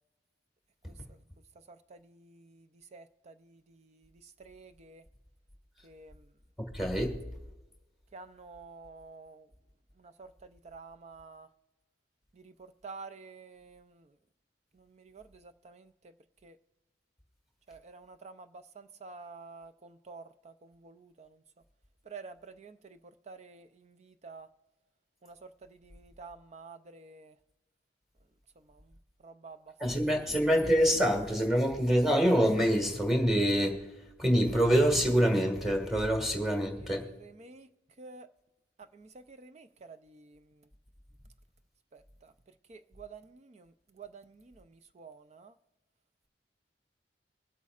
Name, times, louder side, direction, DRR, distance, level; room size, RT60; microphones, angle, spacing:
voice 1, 2.9-3.3 4.5-5.0 5.8-6.1 8.1-9.4 10.7-11.5 12.8-13.8 15.1-15.2 16.4-16.5 17.7-18.3 19.0-19.7 20.1-20.2 20.8-21.3 22.1-22.7 23.3-23.6 24.2-24.5 26.2-27.3 29.2-29.6 30.2-30.3 36.9-37.7 38.0-38.3 39.3-39.7 42.7-43.2 44.0-44.2 45.0-45.5, right 4 dB, 35° right, 0.4 m, -48 dB
voice 2, 6.7-7.2 29.8-33.8 34.2-37.0, equal, ahead, 1.7 m, -26 dB
24.5 x 8.3 x 2.4 m
head